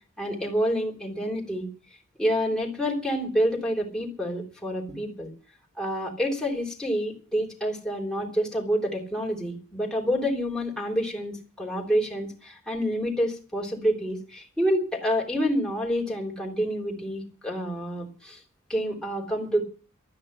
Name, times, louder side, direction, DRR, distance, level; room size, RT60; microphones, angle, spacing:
voice 1, 0.2-1.7 2.2-5.3 5.8-18.4 18.7-19.6, equal, 5° left, -2 dB, 3.5 m, -28 dB
12.5 x 9.7 x 9.8 m, 0.39 s
head